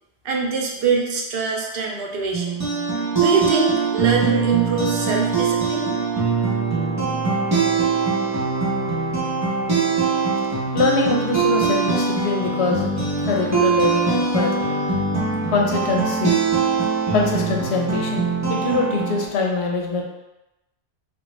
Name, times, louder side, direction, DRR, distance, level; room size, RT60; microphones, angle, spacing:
voice 1, 0.2-2.6 3.1-5.9, right 4 dB, 70° right, 0 dB, 0.8 m, -23 dB
sound 1, 2.3-19.3, right 5 dB, 20° right, 0.6 m, -22 dB
voice 2, 10.7-12.9 13.2-14.6 15.5-16.3 17.1-20.0, left 3 dB, 90° left, 0 dB, 0.9 m, -23 dB
3.4 x 2.2 x 3.0 m, 0.95 s
omnidirectional pair, 1.1 m